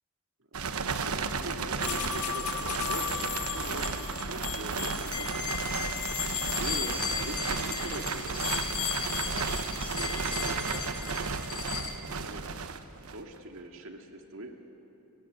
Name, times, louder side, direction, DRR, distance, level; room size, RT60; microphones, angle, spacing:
voice 1, 0.5-5.8 6.4-8.6 9.3-11.3 11.9-12.5 13.0-14.6, right 1 dB, 65° right, 4 dB, 2.2 m, -43 dB
sound 1, 0.5-13.4, right 4 dB, 90° right, 1.1 m, -33 dB
sound 2, 1.8-11.9, left 8 dB, 90° left, 2.1 m, -35 dB
sound 3, 5.5-10.5, right 2 dB, 25° right, 6.0 m, -45 dB
30.0 x 19.0 x 8.0 m, 2.9 s
head